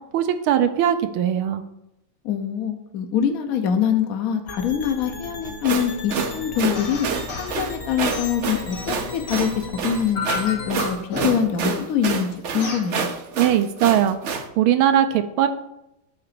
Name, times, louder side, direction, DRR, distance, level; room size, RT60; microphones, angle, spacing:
voice 1, 0.1-1.6 13.4-14.2 14.6-15.5, right 10 dB, 85° right, 8 dB, 1.6 m, -19 dB
voice 2, 2.2-7.1 7.3-11.0 11.2-12.3 12.5-13.1, left 8 dB, 55° left, 5 dB, 1.1 m, -24 dB
sound 1, 4.5-10.9, left 3 dB, 35° left, 1.2 m, -37 dB
sound 2, 5.5-14.5, right 5 dB, 70° right, 0.7 m, -28 dB
sound 3, 6.8-7.6 8.1-9.7 10.1-11.6 12.6-12.9, left 4 dB, 80° left, 2.7 m, -32 dB
9.7 x 3.9 x 6.8 m, 0.85 s
omnidirectional pair, 2.3 m